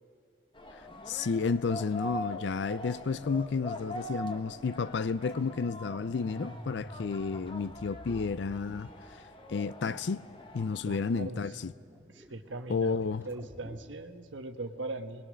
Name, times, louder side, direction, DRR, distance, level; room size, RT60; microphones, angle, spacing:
sound 1, 0.5-10.8, equal, 25° left, 1.2 m, -43 dB
voice 1, 1.1-9.2 9.5-10.2 10.5-11.7 12.7-13.2, left 5 dB, 65° left, 0.4 m, -31 dB
sound 2, 3.0-8.9 10.0-13.8, equal, 15° right, 1.6 m, -51 dB
voice 2, 10.8-11.4 12.1-13.0 13.2-15.2, right 2 dB, 75° right, 1.2 m, -40 dB
23.5 x 20.5 x 6.3 m
head